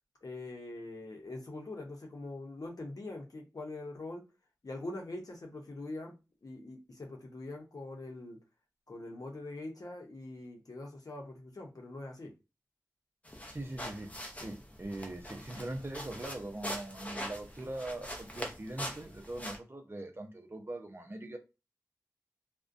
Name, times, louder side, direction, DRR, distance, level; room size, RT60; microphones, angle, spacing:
voice 1, 0.2-4.3 4.6-6.2 6.4-8.4 8.9-12.3, left 2 dB, 70° left, 0.7 m, -43 dB
sound 1, 13.2-19.6, equal, 20° left, 0.6 m, -43 dB
voice 2, 13.5-21.4, right 1 dB, 35° right, 0.6 m, -41 dB
2.4 x 2.1 x 2.5 m
wide cardioid pair, 70°, 6 cm